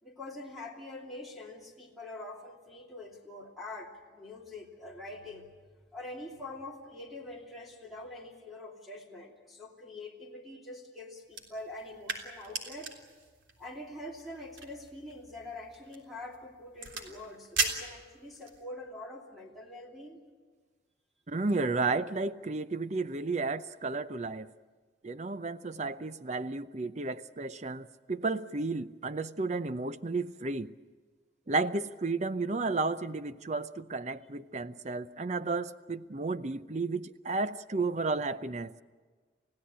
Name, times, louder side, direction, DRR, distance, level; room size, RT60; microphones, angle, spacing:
voice 1, 0.0-5.5 5.9-12.9 13.6-20.2, left 2 dB, ahead, -1 dB, 2.8 m, -45 dB
sound 1, 11.3-18.6, right 4 dB, 85° right, 3.5 m, -39 dB
voice 2, 21.3-24.5 25.0-30.7 31.5-38.7, right 3 dB, 35° right, 13 dB, 0.7 m, -32 dB
30.0 x 16.0 x 8.7 m, 1.4 s
head